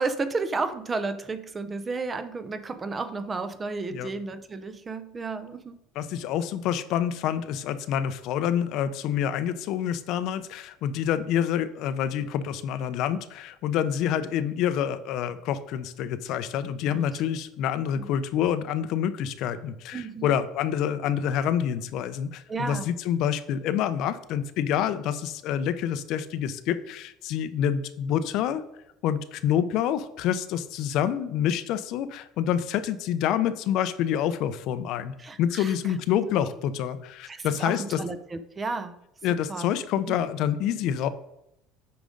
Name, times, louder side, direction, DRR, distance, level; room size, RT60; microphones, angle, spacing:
voice 1, 0.0-5.8 16.9-17.0 17.9-18.1 19.9-20.4 22.5-22.9 35.2-35.7 37.3-38.9 39.5-39.7 40.1-40.2, right 3 dB, 20° right, 12 dB, 0.5 m, -32 dB
voice 2, 5.9-28.6 29.0-38.0 39.2-41.1, left 9 dB, 55° left, 12 dB, 0.5 m, -27 dB
8.4 x 5.1 x 3.8 m, 0.80 s
cardioid pair, 155°, 0 cm